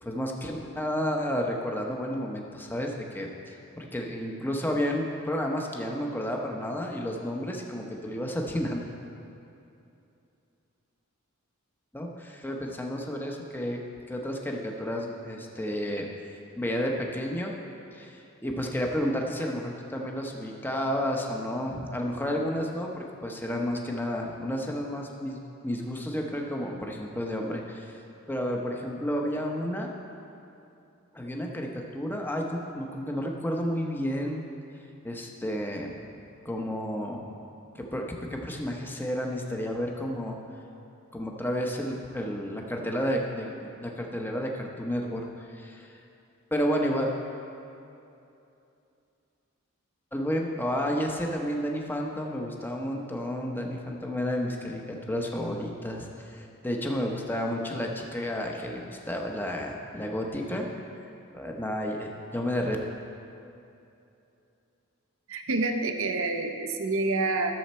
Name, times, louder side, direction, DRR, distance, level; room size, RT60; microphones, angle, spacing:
voice 1, 0.0-8.9 11.9-13.8 14.1-16.3 16.6-17.6 17.9-28.0 28.3-29.9 31.1-34.4 35.0-35.9 36.4-37.3 37.7-40.4 41.1-46.0 46.5-47.1 50.1-60.7 61.3-62.8, equal, 10° left, 1 dB, 0.8 m, -31 dB
voice 2, 65.3-67.5, right 3 dB, 65° right, 5 dB, 0.8 m, -27 dB
13.5 x 7.1 x 4.3 m, 2.7 s
head